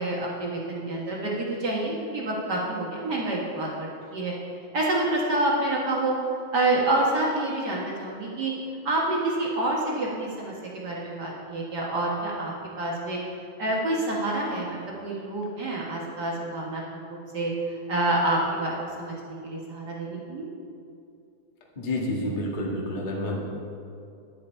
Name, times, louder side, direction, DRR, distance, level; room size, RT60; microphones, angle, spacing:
voice 1, 0.0-4.3 4.7-6.2 6.5-8.5 8.8-13.2 13.6-16.8 17.1-17.5 17.9-20.4, right 2 dB, 60° right, -3 dB, 1.1 m, -28 dB
voice 2, 21.8-23.4, left 1 dB, 55° left, -3 dB, 0.5 m, -29 dB
11.5 x 10.0 x 4.4 m, 2.5 s
omnidirectional pair, 3.8 m